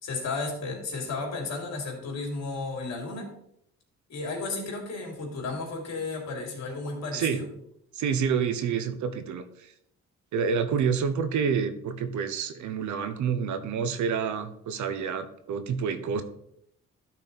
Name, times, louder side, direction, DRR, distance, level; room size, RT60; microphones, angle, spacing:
voice 1, 0.0-3.3 4.1-7.5, left 3 dB, 60° left, 1 dB, 3.0 m, -33 dB
voice 2, 7.9-9.7 10.3-16.2, right 6 dB, 75° right, 10 dB, 0.9 m, -28 dB
12.0 x 4.3 x 4.1 m, 0.75 s
cardioid pair, 90°, 30 cm